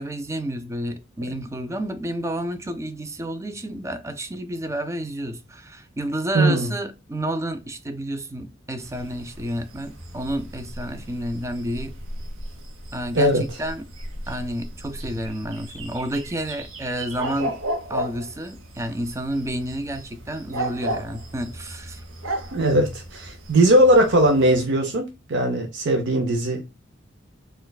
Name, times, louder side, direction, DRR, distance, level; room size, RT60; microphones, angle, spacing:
voice 1, 0.0-12.0 12.9-13.8 14.3-17.6 17.9-22.0, right 1 dB, 15° right, 0.4 m, -30 dB
voice 2, 6.3-6.7 13.1-13.4 22.5-26.6, right 1 dB, 60° right, 0.6 m, -19 dB
sound 1, 8.8-24.6, right 1 dB, 85° right, 0.9 m, -35 dB
4.3 x 2.4 x 2.3 m
head